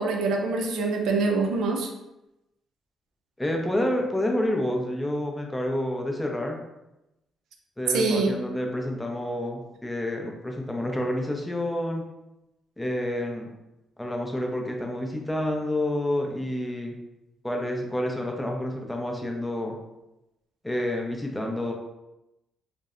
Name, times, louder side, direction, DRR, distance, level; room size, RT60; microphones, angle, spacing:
voice 1, 0.0-1.9 7.9-8.3, right 3 dB, 80° right, 2 dB, 0.4 m, -24 dB
voice 2, 3.4-6.6 7.8-12.1 12.8-13.5 14.0-16.9 17.4-19.7 20.6-21.7, left 1 dB, 10° left, 1 dB, 0.4 m, -29 dB
2.6 x 2.0 x 2.4 m, 0.93 s
cardioid pair, 90°, 0 cm